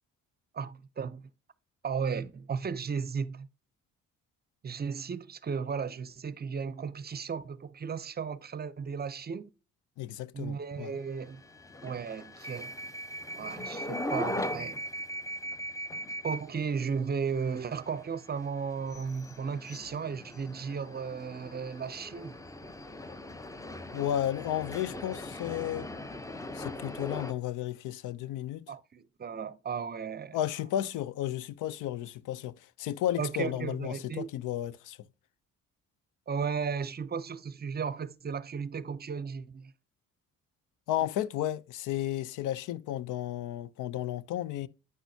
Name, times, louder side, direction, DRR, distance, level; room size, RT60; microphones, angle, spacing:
voice 1, 0.5-1.3 1.8-3.5 4.6-9.5 10.3-11.4 11.8-12.8 13.3-14.8 16.2-22.4 28.7-30.4 33.2-34.3 36.3-39.7, right 6 dB, 30° right, 0.6 m, -35 dB
voice 2, 10.0-10.9 23.9-25.9 26.5-28.6 30.3-35.0 40.9-44.7, left 12 dB, 85° left, 0.6 m, -33 dB
sound 1, 11.0-27.3, left 1 dB, 10° left, 0.7 m, -40 dB
9.2 x 6.1 x 2.7 m
cardioid pair, 90°, 30 cm